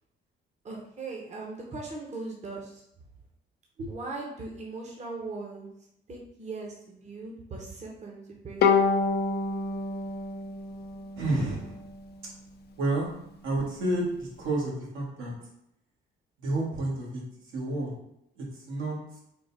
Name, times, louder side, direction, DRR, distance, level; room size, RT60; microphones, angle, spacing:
voice 1, 0.6-2.8 3.9-5.7 6.1-8.6, right 3 dB, 35° right, -1 dB, 0.8 m, -39 dB
Bowed string instrument, 8.6-11.9, left 4 dB, 55° left, 0.5 m, -27 dB
voice 2, 11.1-11.9 12.8-13.1 13.4-15.3 16.4-17.2 17.5-17.9 18.4-19.2, right 2 dB, 85° right, -4 dB, 1.4 m, -30 dB
3.8 x 2.3 x 3.9 m, 0.77 s
cardioid pair, 90°, 20 cm